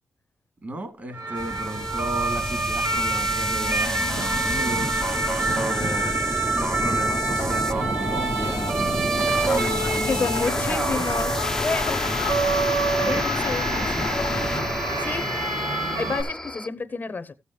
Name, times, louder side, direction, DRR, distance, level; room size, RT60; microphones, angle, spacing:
voice 1, 0.6-6.1 6.5-9.0 9.4-11.1 11.7-12.2 13.0-13.2 13.7-14.1, right 1 dB, 35° right, 3.0 m, -34 dB
sound 1, 1.1-16.2, right 3 dB, 80° right, 2.7 m, -27 dB
sound 2, 1.4-16.7, left 1 dB, 10° left, 0.8 m, -30 dB
sound 3, 9.2-14.6, left 8 dB, 80° left, 0.9 m, -33 dB
voice 2, 10.1-11.3 11.6-12.1 13.0-13.7 15.0-15.3 16.0-17.3, left 4 dB, 35° left, 0.9 m, -29 dB
15.0 x 7.1 x 3.2 m
cardioid pair, 95°, 5 cm